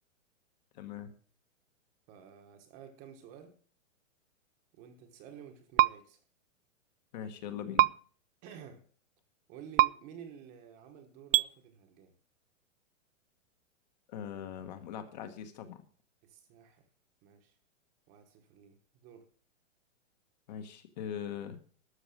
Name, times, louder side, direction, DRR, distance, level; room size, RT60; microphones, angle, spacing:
voice 1, 0.7-1.1 7.1-7.9 14.1-15.8 20.5-21.6, left 8 dB, 35° left, 8 dB, 1.3 m, -41 dB
voice 2, 2.1-3.5 4.7-6.2 8.4-8.8 9.5-12.1 16.2-16.8 17.2-17.5 18.1-19.3, right 8 dB, 20° right, 6 dB, 1.2 m, -51 dB
sound 1, 5.8-5.9 7.8-7.9 9.8-9.9 11.3-11.5, right 15 dB, 80° right, 0.5 m, -22 dB
13.0 x 6.7 x 6.5 m, 0.43 s
hypercardioid pair, 170°, 38 cm